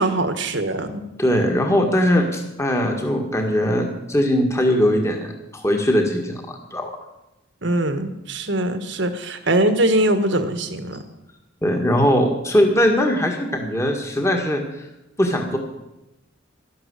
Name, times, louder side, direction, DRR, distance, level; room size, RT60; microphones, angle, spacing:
voice 1, 0.0-1.0 7.6-11.0, right 1 dB, 65° right, 9 dB, 1.6 m, -22 dB
voice 2, 1.2-6.9 11.6-14.6 15.2-15.6, equal, 15° left, 2 dB, 1.8 m, -20 dB
12.5 x 12.0 x 8.3 m, 0.94 s
head